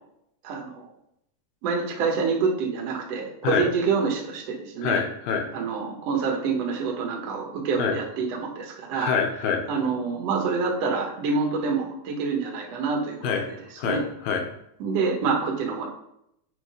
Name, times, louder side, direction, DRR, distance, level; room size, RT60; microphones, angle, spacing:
voice 1, 0.4-0.9 1.6-5.0 5.5-9.1 9.7-13.6 13.8-14.0 14.8-15.9, right 5 dB, 60° right, -1 dB, 1.9 m, -27 dB
voice 2, 4.8-5.5 7.8-8.0 8.9-9.6 13.2-13.4 13.8-14.4, left 6 dB, 80° left, 4 dB, 2.8 m, -25 dB
7.5 x 3.8 x 4.9 m, 0.77 s
omnidirectional pair, 4.2 m